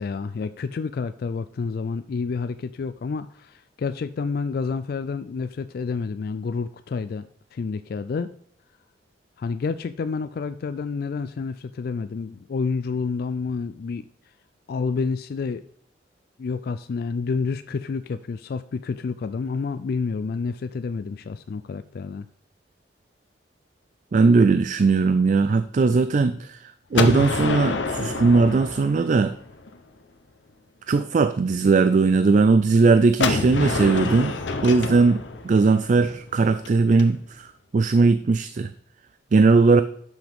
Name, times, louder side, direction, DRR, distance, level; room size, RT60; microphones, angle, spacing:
voice 1, 0.0-7.3 7.5-8.3 9.4-14.1 14.7-15.6 16.4-22.3, left 4 dB, 55° left, 12 dB, 0.3 m, -29 dB
voice 2, 24.1-26.6 26.9-29.3 30.9-34.3 34.6-35.2 35.4-37.5 37.7-38.7 39.3-39.8, right 4 dB, 45° right, 12 dB, 0.3 m, -18 dB
Gunshot gunfire, 26.9-29.8 33.2-37.0, left 3 dB, 85° left, 0.9 m, -27 dB
11.5 x 6.2 x 3.6 m, 0.65 s
head